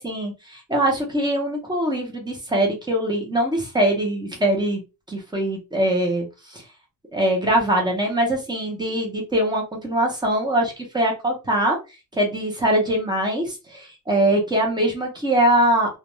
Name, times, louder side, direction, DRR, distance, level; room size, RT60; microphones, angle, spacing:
voice 1, 0.0-4.8 5.1-6.6 7.1-11.8 12.1-16.0, right 1 dB, 10° right, 0 dB, 0.7 m, -22 dB
2.4 x 2.2 x 3.0 m, 0.29 s
cardioid pair, 170°, 37 cm